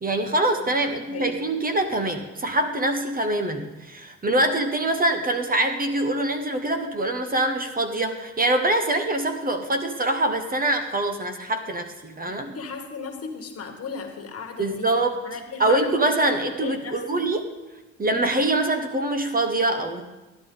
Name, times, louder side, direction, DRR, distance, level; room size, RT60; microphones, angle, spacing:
voice 1, 0.0-12.5 14.6-15.1 15.6-17.5 18.0-20.0, right 1 dB, 30° right, 5 dB, 1.2 m, -24 dB
voice 2, 0.8-1.3 12.3-14.9 15.2-17.2, left 5 dB, 50° left, 4 dB, 1.7 m, -36 dB
11.5 x 11.5 x 3.9 m, 1.1 s
cardioid pair, 90°, 30 cm